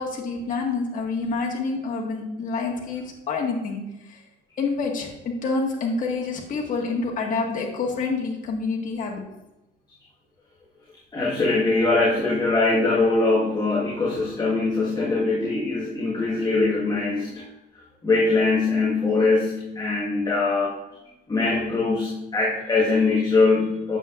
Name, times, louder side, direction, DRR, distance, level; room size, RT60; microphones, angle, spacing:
voice 1, 0.0-3.8 4.1-4.2 4.6-9.2, left 4 dB, 50° left, -1 dB, 1.8 m, -27 dB
voice 2, 11.1-17.4 18.0-20.7 21.3-24.0, left 3 dB, 25° left, -5 dB, 1.6 m, -22 dB
8.8 x 7.5 x 2.5 m, 0.96 s
cardioid pair, 110°, 17 cm